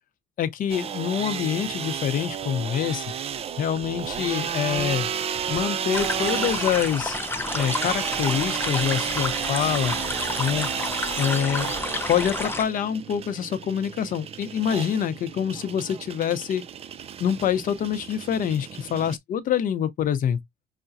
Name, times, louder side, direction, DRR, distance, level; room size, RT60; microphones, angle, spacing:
voice 1, 0.4-3.1 3.6-5.1 5.5-7.2 7.5-10.0 10.4-10.7 11.2-11.7 12.1-16.6 17.2-20.4, left 9 dB, 55° left, 0.7 m, -26 dB
sound 1, 0.7-19.2, right 8 dB, 35° right, 0.4 m, -32 dB
sound 2, 5.9-12.6, left 3 dB, 15° left, 0.7 m, -31 dB
5.7 x 2.1 x 2.6 m
cardioid pair, 110°, 17 cm